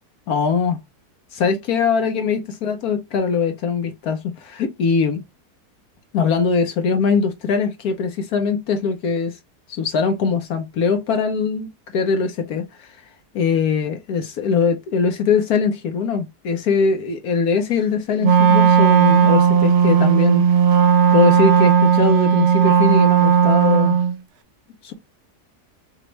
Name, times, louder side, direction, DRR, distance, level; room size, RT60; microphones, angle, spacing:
voice 1, 0.3-0.8 1.3-5.2 6.1-9.3 9.7-12.9 13.3-20.4 21.1-24.0 24.8-24.9, left 5 dB, 70° left, 1.3 m, -21 dB
Wind instrument woodwind instrument, 18.2-24.2, right 7 dB, 60° right, 0.7 m, -15 dB
6.0 x 2.5 x 3.2 m
omnidirectional pair, 1.7 m